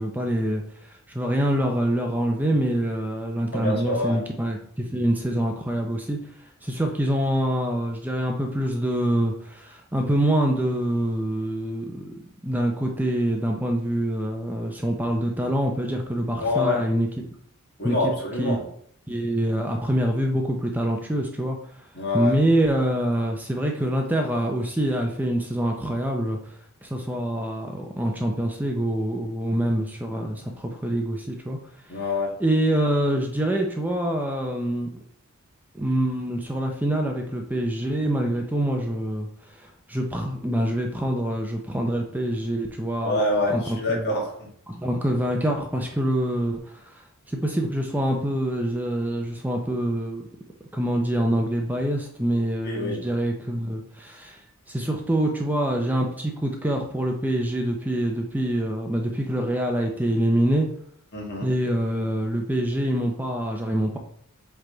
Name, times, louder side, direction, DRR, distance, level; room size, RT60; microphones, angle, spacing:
voice 1, 0.0-17.2 17.8-18.1 18.4-18.6 19.1-21.9 22.1-31.6 31.8-32.0 32.4-34.9 35.7-43.2 43.5-44.1 44.7-50.2 50.7-60.7 61.4-64.0, right 1 dB, 10° right, 2 dB, 0.6 m, -25 dB
voice 2, 3.5-4.2 16.4-16.8 17.8-18.6 21.9-22.3 31.9-32.3 43.0-44.5 52.6-53.0 61.1-61.5, left 2 dB, 50° left, -2 dB, 2.0 m, -26 dB
7.8 x 3.4 x 3.9 m, 0.63 s
head